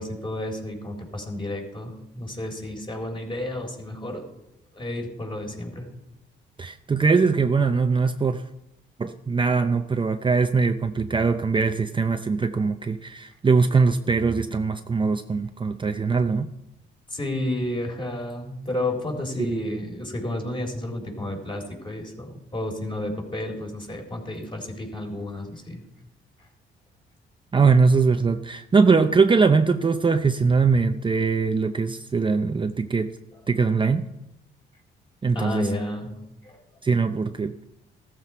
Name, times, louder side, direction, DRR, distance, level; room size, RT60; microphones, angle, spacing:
voice 1, 0.0-4.3 4.7-5.9 14.5-14.6 17.1-25.8 35.3-36.2 36.4-36.6, left 1 dB, 25° left, 4.0 m, -31 dB
voice 2, 6.6-8.5 9.0-16.5 19.4-19.8 27.5-33.2 33.5-34.1 35.2-35.7 36.8-37.6, right 4 dB, 25° right, 0.6 m, -21 dB
15.5 x 13.5 x 4.6 m
cardioid pair, 90°, 20 cm